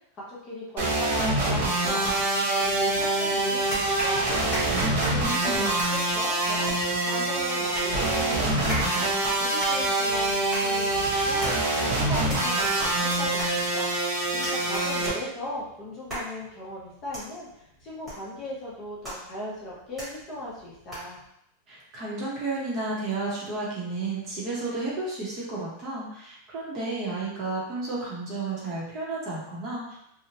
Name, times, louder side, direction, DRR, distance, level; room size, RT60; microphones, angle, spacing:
voice 1, 0.1-2.2 2.6-4.7 5.0-6.8 7.0-9.1 9.4-13.9 14.3-21.2, left 1 dB, 25° left, -6 dB, 0.7 m, -38 dB
sound 1, 0.8-15.1, right 2 dB, 60° right, 0.8 m, -25 dB
sound 2, 2.6-3.2 3.7-21.3, right 1 dB, 5° right, 1.2 m, -39 dB
voice 2, 5.1-5.7 21.7-30.0, right 3 dB, 30° right, -5 dB, 0.8 m, -32 dB
2.9 x 2.1 x 2.8 m, 0.76 s
supercardioid pair, 170°, 0 cm